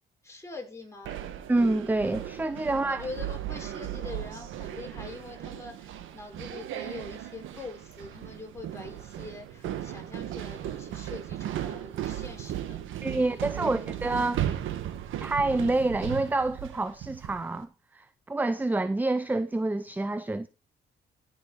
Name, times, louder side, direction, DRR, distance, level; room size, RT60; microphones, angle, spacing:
voice 1, 0.2-1.2 2.6-12.8 13.1-14.4, left 3 dB, 15° left, 5.6 m, -44 dB
sound 1, 1.0-17.5, right 11 dB, 85° right, 1.5 m, -36 dB
voice 2, 1.5-3.1 13.0-14.5 15.2-17.7 17.9-20.5, right 2 dB, 10° right, 0.6 m, -27 dB
16.0 x 6.4 x 4.6 m
cardioid pair, 90°, 20 cm